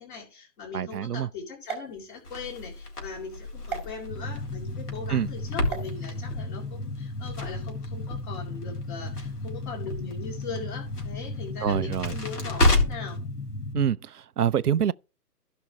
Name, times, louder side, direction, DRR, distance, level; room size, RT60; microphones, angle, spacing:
voice 1, 0.0-13.2, left 5 dB, 30° left, 3.6 m, -40 dB
voice 2, 0.7-1.3 5.1-5.3 11.6-12.2 13.7-14.9, right 9 dB, 65° right, 0.6 m, -26 dB
sound 1, 1.6-2.7 3.7-3.9 5.6-5.9, right 7 dB, 5° right, 1.9 m, -38 dB
Crackle, 2.2-13.2, left 2 dB, 65° left, 4.0 m, -31 dB
sound 2, 4.1-13.9, left 2 dB, 80° left, 1.6 m, -35 dB
15.5 x 6.1 x 3.2 m
figure-of-eight pair, 140°, 49 cm